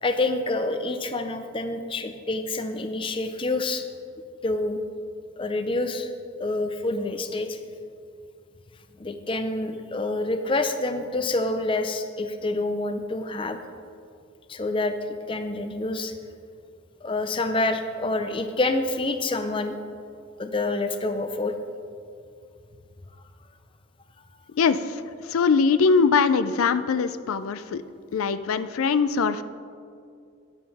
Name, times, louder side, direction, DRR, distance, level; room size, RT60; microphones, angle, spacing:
voice 1, 0.0-3.8 4.4-4.8 5.4-6.1 6.4-7.6 9.0-13.6 14.5-14.9 15.3-16.1 17.0-19.8 20.4-21.6, left 2 dB, 25° left, 8 dB, 0.5 m, -27 dB
voice 2, 24.5-27.8 28.1-29.4, left 5 dB, 85° left, 12 dB, 0.4 m, -22 dB
13.0 x 9.7 x 3.4 m, 2.4 s
head